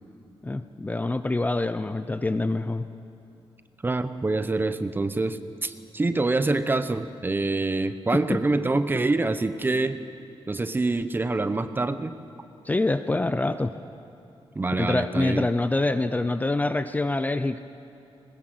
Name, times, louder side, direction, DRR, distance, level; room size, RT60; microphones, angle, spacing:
voice 1, 0.4-2.8 8.1-8.2 12.7-13.7 14.8-17.6, left 2 dB, 15° left, 11 dB, 0.6 m, -25 dB
voice 2, 3.8-10.0 10.5-12.1 14.5-15.5, right 2 dB, 20° right, 11 dB, 0.8 m, -26 dB
21.0 x 20.0 x 7.8 m, 2.8 s
wide cardioid pair, 145°, 10 cm